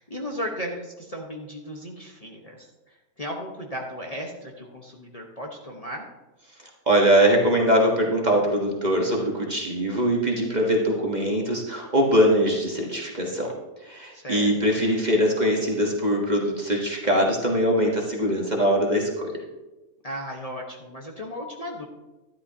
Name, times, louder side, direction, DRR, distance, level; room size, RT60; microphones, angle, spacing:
voice 1, 0.0-6.1 14.1-14.8 20.0-21.9, equal, 30° left, -1 dB, 1.2 m, -35 dB
voice 2, 6.9-13.5 13.8-19.3, equal, 30° right, -1 dB, 1.4 m, -22 dB
12.5 x 11.5 x 2.8 m, 1.1 s
omnidirectional pair, 1.5 m